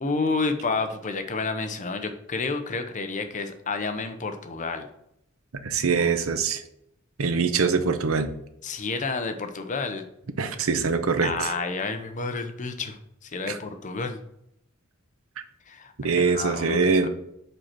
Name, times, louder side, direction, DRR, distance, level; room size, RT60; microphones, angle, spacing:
voice 1, 0.0-4.9 8.6-10.0 11.2-14.2 15.7-17.1, left 4 dB, 35° left, 7 dB, 0.6 m, -30 dB
voice 2, 5.6-6.6 7.2-8.3 10.4-11.5 13.5-13.6 16.0-17.1, right 5 dB, 65° right, 10 dB, 0.7 m, -23 dB
5.3 x 4.3 x 6.0 m, 0.76 s
head